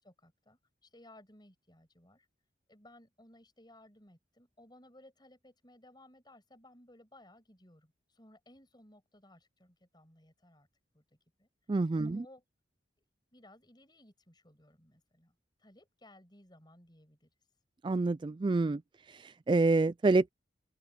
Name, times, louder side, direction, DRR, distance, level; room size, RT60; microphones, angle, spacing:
voice 1, 0.0-2.3 2.7-10.7 10.9-11.0 11.4-11.5 12.0-12.4 13.0-13.1 13.3-15.3 15.6-17.3, left 1 dB, 25° left, 7.7 m, -59 dB
voice 2, 11.7-12.2 17.8-18.8 19.1-20.3, right 3 dB, 25° right, 0.3 m, -27 dB
open air
head